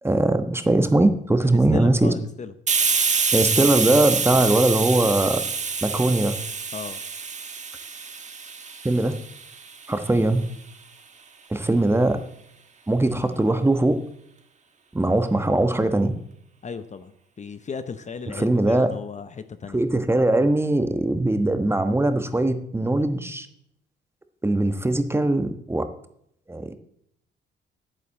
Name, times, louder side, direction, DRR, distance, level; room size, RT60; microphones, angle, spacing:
voice 1, 0.0-2.1 3.3-5.4 5.8-6.4 8.8-9.1 9.9-10.5 11.5-12.2 12.9-14.0 14.9-16.1 18.4-18.9 19.7-23.5 24.4-25.9 26.5-26.7, right 2 dB, 10° right, 9 dB, 1.2 m, -21 dB
voice 2, 1.4-2.5 6.7-7.0 16.6-19.8, left 5 dB, 35° left, 11 dB, 0.8 m, -36 dB
Hiss, 2.7-10.1, right 5 dB, 35° right, 1.3 m, -26 dB
9.4 x 8.3 x 7.5 m, 0.73 s
cardioid pair, 90°, 20 cm